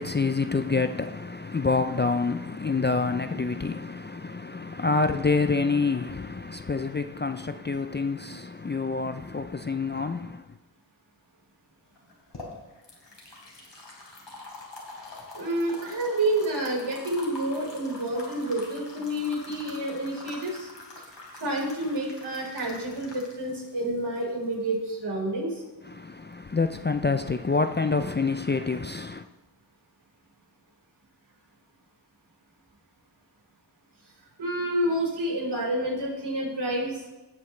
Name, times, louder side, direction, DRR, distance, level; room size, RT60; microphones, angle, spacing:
voice 1, 0.0-10.4 25.8-29.2, left 4 dB, 25° left, 0.4 m, -27 dB
sound 1, 12.0-24.9, left 2 dB, 70° left, 3.4 m, -45 dB
voice 2, 15.3-20.7 21.3-25.6 34.4-37.0, right 1 dB, 65° right, 4.5 m, -29 dB
17.5 x 8.7 x 3.3 m
wide cardioid pair, 95°, 44 cm